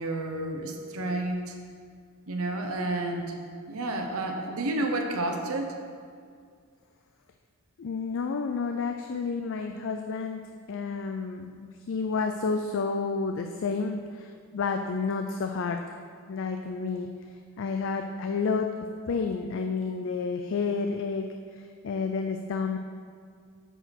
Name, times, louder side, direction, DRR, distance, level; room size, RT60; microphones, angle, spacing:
voice 1, 0.0-1.5 2.3-3.3 3.7-5.7, right 2 dB, 70° right, 3 dB, 0.9 m, -30 dB
voice 2, 7.8-15.8 16.3-17.2 17.6-18.7 19.1-22.8, left 4 dB, 60° left, 5 dB, 0.4 m, -30 dB
8.0 x 4.7 x 6.0 m, 2.1 s
head